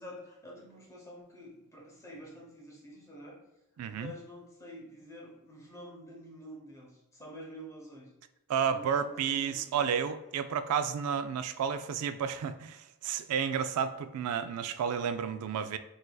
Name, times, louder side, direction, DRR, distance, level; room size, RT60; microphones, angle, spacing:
voice 1, 0.0-3.4 3.9-8.1 8.7-9.8, equal, 15° left, -2 dB, 0.9 m, -48 dB
voice 2, 3.8-4.1 8.5-15.8, right 7 dB, 80° right, 10 dB, 0.3 m, -31 dB
6.1 x 2.6 x 2.3 m, 0.93 s
head